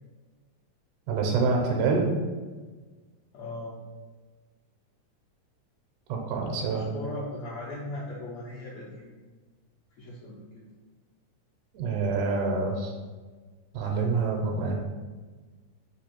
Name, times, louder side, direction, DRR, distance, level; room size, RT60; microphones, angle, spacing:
voice 1, 1.1-2.1 6.1-6.8 11.7-12.9 13.7-14.8, right 4 dB, 80° right, 0 dB, 2.0 m, -26 dB
voice 2, 3.3-3.8 6.7-9.1 10.0-10.4, left 2 dB, 70° left, -7 dB, 1.7 m, -38 dB
4.9 x 2.3 x 4.3 m, 1.4 s
omnidirectional pair, 3.7 m